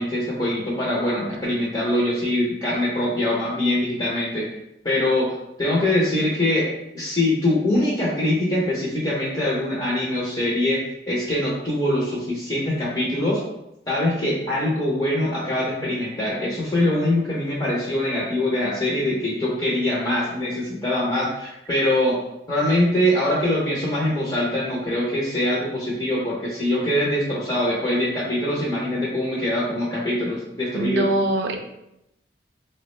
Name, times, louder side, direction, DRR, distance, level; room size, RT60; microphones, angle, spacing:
voice 1, 0.0-4.5 4.8-6.7 6.9-10.8 11.1-13.4 13.9-22.2 22.5-31.1, left 1 dB, 25° left, -6 dB, 0.6 m, -23 dB
voice 2, 30.7-31.6, right 2 dB, 75° right, 4 dB, 0.4 m, -22 dB
3.3 x 2.1 x 3.0 m, 0.84 s
head